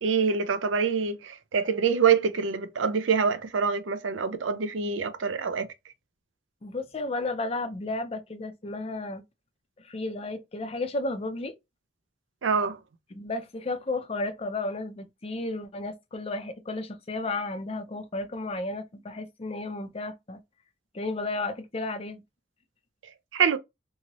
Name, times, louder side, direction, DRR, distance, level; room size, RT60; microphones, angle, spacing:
voice 1, 0.0-5.7 12.4-12.8 23.3-23.6, right 6 dB, 85° right, 0.5 m, -25 dB
voice 2, 6.6-9.2 9.8-11.5 13.1-20.4 20.9-22.2, left 2 dB, 30° left, 0.5 m, -33 dB
2.7 x 2.7 x 2.9 m
head